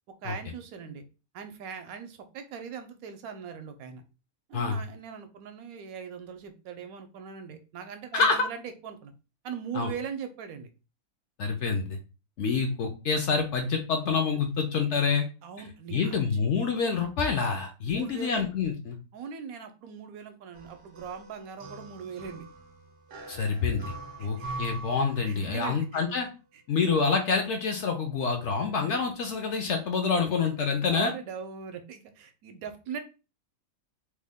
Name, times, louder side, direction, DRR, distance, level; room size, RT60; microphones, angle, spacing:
voice 1, 0.2-1.0 1.3-4.0 4.5-9.1 9.4-10.7 15.4-16.4 17.9-18.5 19.1-22.5 24.2-24.5 25.3-26.0 26.5-26.6 30.9-33.0, right 7 dB, 75° right, 7 dB, 1.0 m, -40 dB
voice 2, 8.1-8.4 9.7-9.9 11.4-12.0 12.4-15.3 15.9-19.0 23.3-23.9 24.2-26.3 26.7-31.1, left 5 dB, 65° left, 4 dB, 0.7 m, -27 dB
sound 1, 20.5-25.7, right 2 dB, 55° right, 0.6 m, -43 dB
3.1 x 2.1 x 3.4 m, 0.32 s
omnidirectional pair, 1.6 m